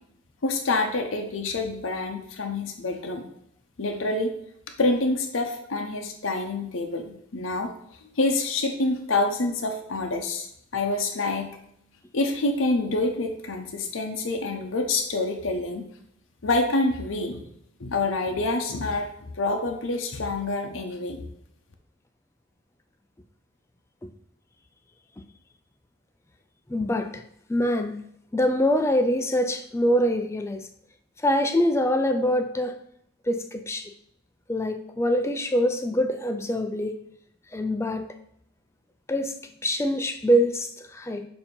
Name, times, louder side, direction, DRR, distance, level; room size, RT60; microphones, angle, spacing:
voice 1, 0.4-3.2 3.8-4.3 4.8-7.7 8.2-10.5 10.7-11.5 12.1-15.8 16.4-17.4 17.8-19.1 19.4-21.2, left 2 dB, 80° left, 3 dB, 0.8 m, -27 dB
voice 2, 26.7-27.2 27.5-28.0 28.3-30.7 31.2-32.8 33.2-33.9 34.5-37.0 37.5-38.1 39.1-39.4 39.6-41.3, equal, 15° left, 7 dB, 0.3 m, -24 dB
7.0 x 2.9 x 5.2 m, 0.72 s
head